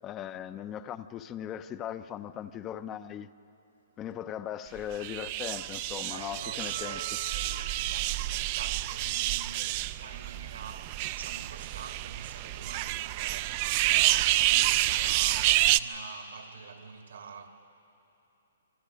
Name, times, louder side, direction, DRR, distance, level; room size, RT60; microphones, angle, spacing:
voice 1, 0.0-3.3 4.0-7.0, left 10 dB, 20° left, 0.5 m, -38 dB
sound 1, 4.9-15.8, right 16 dB, 35° right, 0.4 m, -29 dB
voice 2, 6.0-17.5, right 6 dB, 80° right, 2.4 m, -46 dB
Keyboard (musical), 6.6-9.0, right 10 dB, 55° right, 1.2 m, -45 dB
27.0 x 24.5 x 5.1 m
hypercardioid pair, 160°, 0 cm